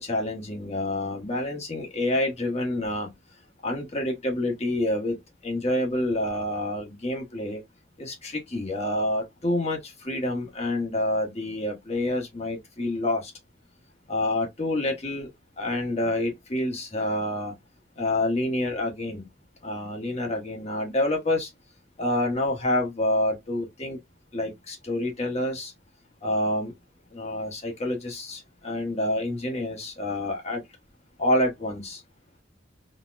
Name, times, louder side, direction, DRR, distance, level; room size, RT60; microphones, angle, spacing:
voice 1, 0.0-3.1 3.6-5.2 5.4-7.6 8.0-13.3 14.1-15.3 15.6-17.5 18.0-19.3 19.6-21.5 22.0-24.0 24.3-25.7 26.2-26.7 27.1-30.6 31.2-32.0, left 1 dB, 35° left, 1.1 m, -28 dB
4.0 x 2.2 x 2.4 m
head